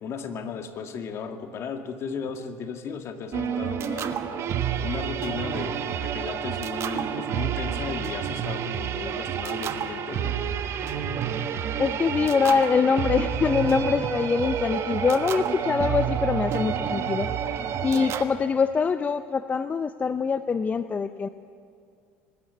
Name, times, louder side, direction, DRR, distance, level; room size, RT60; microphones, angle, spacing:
voice 1, 0.0-4.2 4.8-10.5, left 6 dB, 50° left, 5 dB, 2.1 m, -35 dB
sound 1, 3.3-18.2, right 8 dB, 50° right, 1.4 m, -29 dB
voice 2, 11.8-17.3 17.8-21.3, left 5 dB, 25° left, 12 dB, 0.5 m, -24 dB
23.0 x 13.0 x 9.6 m, 2.4 s
hypercardioid pair, 85°, 6 cm